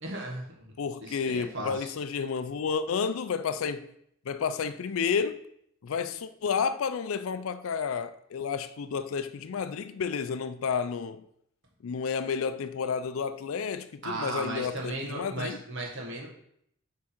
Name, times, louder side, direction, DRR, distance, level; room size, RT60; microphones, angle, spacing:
voice 1, 0.0-0.7 1.0-1.9 14.0-16.3, right 2 dB, 65° right, 1.6 m, -36 dB
voice 2, 0.8-3.9 4.3-5.4 5.8-11.2 11.8-15.6, left 6 dB, 85° left, 0.4 m, -31 dB
8.4 x 3.7 x 4.4 m
head